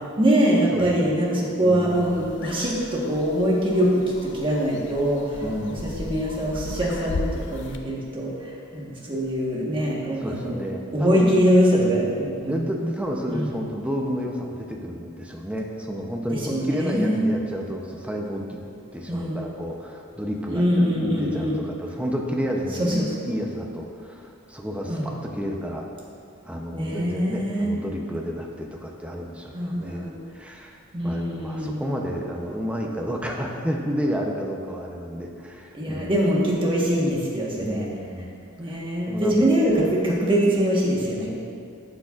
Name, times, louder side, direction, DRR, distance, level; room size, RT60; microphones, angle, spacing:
voice 1, 0.2-5.4 5.8-8.3 8.7-10.6 10.9-12.6 13.3-13.5 16.3-17.3 19.1-19.4 20.5-21.6 22.8-23.1 24.9-25.0 26.7-27.7 29.5-30.1 30.9-31.8 35.7-37.8 38.6-41.3, equal, 25° right, -4 dB, 1.3 m, -23 dB
voice 2, 0.7-1.2 1.6-2.4 5.4-6.2 10.2-11.4 11.8-12.2 12.5-18.6 18.9-25.9 26.4-36.2 37.6-38.3 38.6-38.8 39.1-39.4, equal, 5° right, 0 dB, 0.6 m, -31 dB
sound 1, 1.9-7.8, left 2 dB, 55° left, 0.5 m, -36 dB
11.5 x 6.7 x 2.4 m, 2.4 s
head